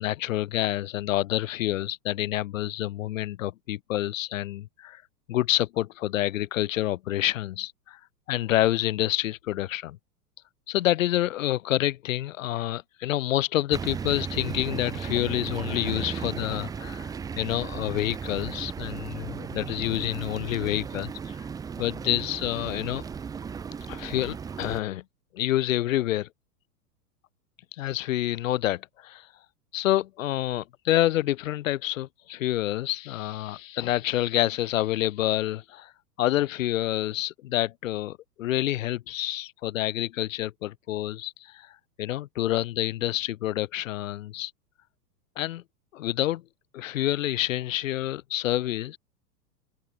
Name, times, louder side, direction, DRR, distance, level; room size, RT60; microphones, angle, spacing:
voice 1, 0.0-5.0 5.3-8.0 8.3-10.0 10.7-21.3 21.8-23.0 23.9-25.0 25.3-26.3 27.8-29.3 29.7-35.9 36.2-44.5 45.4-45.6 45.9-46.4 46.7-49.0, left 14 dB, 55° left, 0.7 m, -28 dB
sound 1, 13.7-24.8, right 6 dB, 10° right, 0.6 m, -35 dB
figure-of-eight pair, 100°, 47 cm